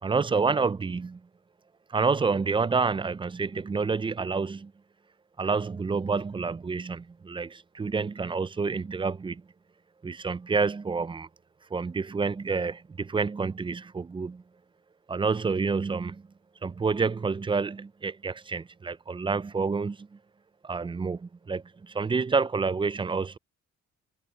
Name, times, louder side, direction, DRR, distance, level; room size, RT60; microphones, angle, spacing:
voice 1, 0.0-1.2 1.9-4.7 5.4-9.4 10.0-11.3 11.7-14.4 15.1-16.2 16.6-20.2 20.6-23.4, right 4 dB, 15° right, 0.4 m, -28 dB
cardioid pair, 90°, 30 cm